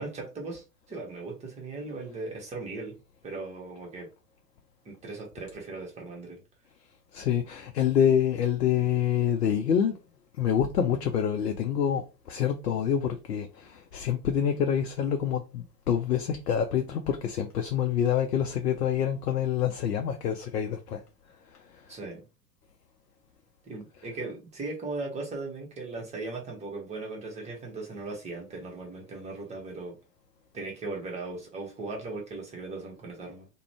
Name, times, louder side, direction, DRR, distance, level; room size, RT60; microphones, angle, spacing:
voice 1, 0.0-3.0 3.2-4.1 4.8-6.4 21.9-22.2 23.6-30.0 30.5-33.5, right 3 dB, 15° right, 0.8 m, -38 dB
voice 2, 7.1-10.0 10.4-21.0, left 9 dB, 75° left, 0.6 m, -26 dB
2.4 x 2.1 x 3.2 m
figure-of-eight pair, 95°, 48 cm